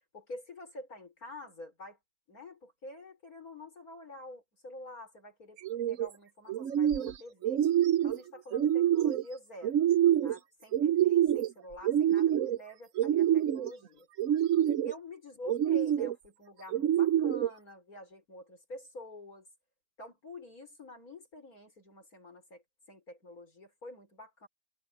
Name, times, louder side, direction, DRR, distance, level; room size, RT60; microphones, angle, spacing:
voice 1, 0.1-2.0 2.3-5.6 5.9-7.6 8.0-9.8 10.2-14.1 14.8-19.5 20.0-22.6 22.9-24.5, left 1 dB, 65° left, 6.0 m, -48 dB
sound 1, 5.6-6.1 6.5-7.1 7.4-8.2 8.5-9.2 9.6-10.4 10.7-11.5 11.8-12.6 13.0-13.7 14.2-14.9 15.5-16.1 16.7-17.5, right 11 dB, 65° right, 1.0 m, -26 dB
omnidirectional pair, 1.6 m